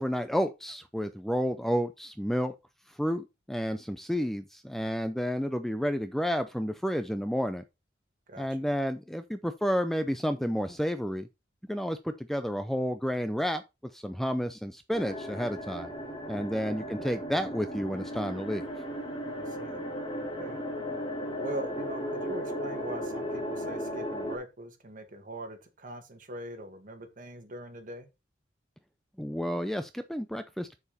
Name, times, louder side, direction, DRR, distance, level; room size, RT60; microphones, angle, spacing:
voice 1, 0.0-2.5 3.0-7.6 8.4-11.3 11.7-13.6 13.9-15.9 16.3-18.7 29.2-30.8, equal, ahead, 0.4 m, -31 dB
voice 2, 8.3-8.7 16.3-16.7 19.4-19.9 20.4-20.6 21.4-28.1, right 1 dB, 45° right, 1.9 m, -42 dB
sound 1, 14.9-24.4, equal, 30° left, 2.2 m, -36 dB
7.0 x 6.8 x 4.1 m
head